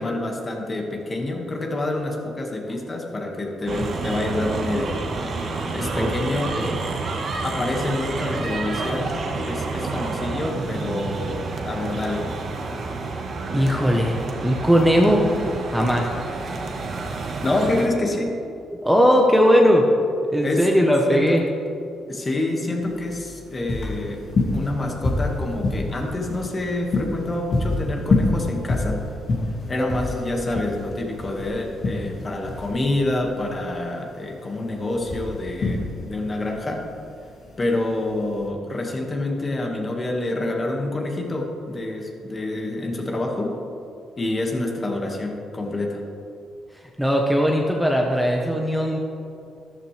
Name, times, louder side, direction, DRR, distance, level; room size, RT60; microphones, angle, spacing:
voice 1, 0.0-5.0 5.7-6.6 7.4-9.2 9.4-12.3 17.4-18.4 20.4-20.8 21.1-21.4 22.1-29.1 29.7-36.9 37.6-43.6 44.2-46.0, left 2 dB, 30° left, 1 dB, 1.9 m, -27 dB
sound 1, 3.7-17.9, right 3 dB, 50° right, 1.5 m, -29 dB
voice 2, 13.5-15.2 15.7-16.1 16.4-16.6 18.8-19.9 20.3-21.4 47.0-49.0, equal, ahead, 0 dB, 1.2 m, -19 dB
sound 2, 22.8-38.5, left 3 dB, 55° left, 2.5 m, -27 dB
13.5 x 11.5 x 3.4 m, 2.6 s
cardioid pair, 90°, 0 cm